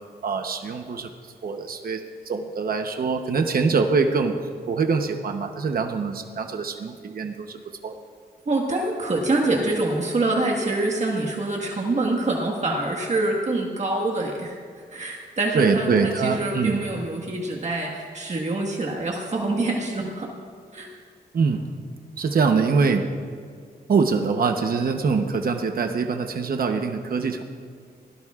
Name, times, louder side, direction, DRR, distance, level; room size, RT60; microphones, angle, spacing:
voice 1, 0.2-1.1 1.4-4.4 4.7-7.9 15.5-16.8 21.3-21.7 22.2-23.1 23.9-27.4, right 5 dB, 60° right, 4 dB, 0.9 m, -24 dB
voice 2, 8.5-20.3 20.7-20.9, right 2 dB, 45° right, -1 dB, 1.6 m, -25 dB
23.5 x 17.0 x 2.4 m, 2.1 s
wide cardioid pair, 145°, 17 cm